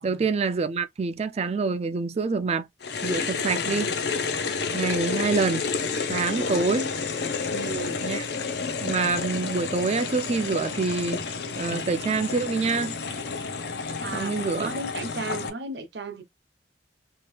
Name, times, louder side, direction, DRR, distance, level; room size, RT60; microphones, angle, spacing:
voice 1, 0.0-2.7 3.0-3.9 4.7-5.6 6.1-6.9 8.0-8.2 8.8-11.2 11.6-12.9 14.1-14.7, right 4 dB, 35° right, 0.3 m, -26 dB
sound 1, 2.8-15.5, left 5 dB, 65° left, 0.6 m, -30 dB
voice 2, 3.3-3.8 4.4-4.7 6.3-6.7 7.5-8.0 14.0-16.2, right 3 dB, 65° right, 0.7 m, -36 dB
2.9 x 2.4 x 3.0 m
head